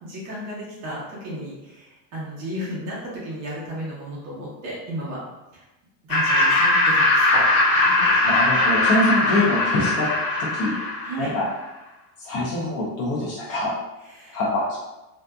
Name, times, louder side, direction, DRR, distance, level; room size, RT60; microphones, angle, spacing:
voice 1, 0.0-5.2 5.5-5.7 6.1-7.4 7.7-8.2 11.0-11.3 14.0-14.4, equal, 40° right, -6 dB, 1.0 m, -34 dB
Laughter, 6.1-11.4, left 2 dB, 85° left, 0.9 m, -20 dB
voice 2, 8.2-10.1 10.5-10.7 11.2-11.4 12.2-13.7 14.3-14.8, left 2 dB, 35° left, -5 dB, 0.6 m, -24 dB
2.6 x 2.3 x 2.2 m, 1.0 s
cardioid pair, 155°, 41 cm